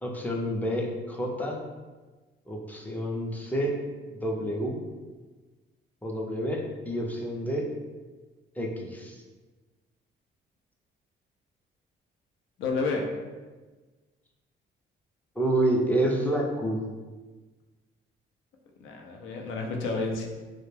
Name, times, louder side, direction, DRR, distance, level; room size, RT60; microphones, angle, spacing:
voice 1, 0.0-1.6 2.5-3.8 4.2-4.8 6.0-7.7 8.6-9.2 15.4-16.8, right 1 dB, 10° left, -1 dB, 0.4 m, -28 dB
voice 2, 12.6-13.1 18.8-20.3, left 3 dB, 85° left, 1 dB, 0.5 m, -30 dB
2.2 x 2.1 x 3.1 m, 1.3 s
cardioid pair, 90°, 20 cm